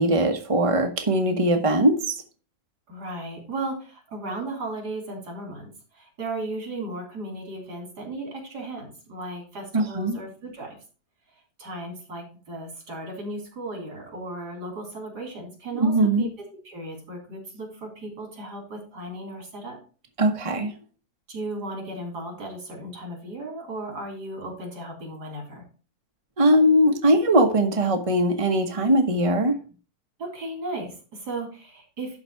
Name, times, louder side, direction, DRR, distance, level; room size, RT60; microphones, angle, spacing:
voice 1, 0.0-2.2 9.7-10.2 15.8-16.3 20.2-20.7 26.4-29.6, right 1 dB, 25° right, 5 dB, 1.1 m, -20 dB
voice 2, 2.9-10.8 11.6-16.3 16.6-19.8 21.3-25.6 30.2-32.2, right 2 dB, 85° right, 1 dB, 4.1 m, -35 dB
12.0 x 4.0 x 5.7 m, 0.36 s
omnidirectional pair, 1.7 m